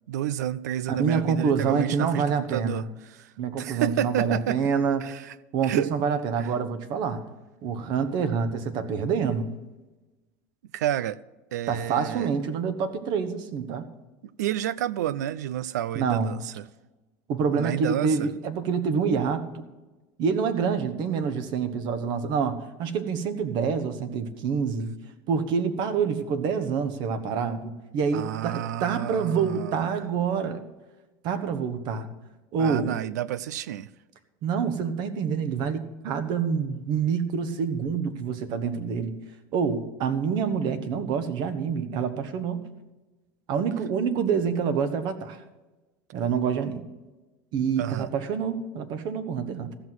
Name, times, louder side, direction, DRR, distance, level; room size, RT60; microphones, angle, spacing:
voice 1, 0.1-4.6 5.0-5.3 5.6-5.9 6.4-6.5 10.7-11.2 11.5-12.3 14.2-16.7 17.5-18.3 24.8-24.9 28.1-29.9 32.6-33.9 47.8-48.1, right 11 dB, 90° right, 0.5 m, -30 dB
voice 2, 0.9-2.9 3.4-5.0 5.5-7.2 7.6-9.5 11.7-13.8 15.9-16.4 17.3-19.6 20.2-24.9 25.3-30.6 31.2-32.1 32.5-32.9 34.4-39.1 39.5-42.6 43.5-45.4 46.1-46.9 47.5-49.8, right 6 dB, 55° right, 1.4 m, -27 dB
14.5 x 6.2 x 7.7 m
supercardioid pair, 105°, 9 cm